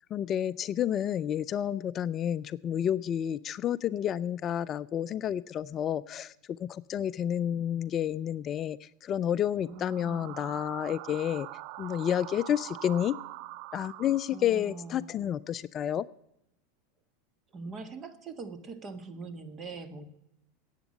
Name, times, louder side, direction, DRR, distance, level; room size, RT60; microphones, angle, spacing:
voice 1, 0.1-11.5 11.8-13.2 13.7-16.0, left 10 dB, 40° left, 16 dB, 0.4 m, -30 dB
voice 2, 9.6-10.3 14.3-15.1 17.5-20.0, right 4 dB, 35° right, 10 dB, 1.7 m, -42 dB
sound 1, 9.6-14.7, right 16 dB, 60° right, 0.5 m, -44 dB
10.5 x 8.2 x 9.7 m, 0.82 s
hypercardioid pair, 100°, 0 cm